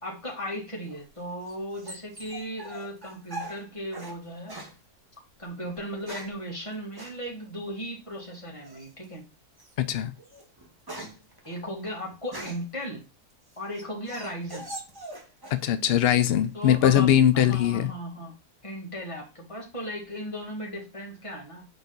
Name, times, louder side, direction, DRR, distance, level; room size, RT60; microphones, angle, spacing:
voice 1, 0.0-4.6 5.4-9.3 11.4-13.0 13.6-14.7 16.5-18.3 18.6-21.7, equal, 20° left, 2.1 m, -36 dB
sound 1, 0.9-4.2 4.5-4.8 5.7-6.4 7.0-7.2 8.6-9.0 9.6-9.7 10.2-12.8 13.3-15.6 15.9-16.5, right 2 dB, 15° right, 1.2 m, -42 dB
voice 2, 9.8-10.1 15.5-17.9, left 10 dB, 85° left, 0.5 m, -21 dB
6.8 x 4.0 x 4.0 m
omnidirectional pair, 1.6 m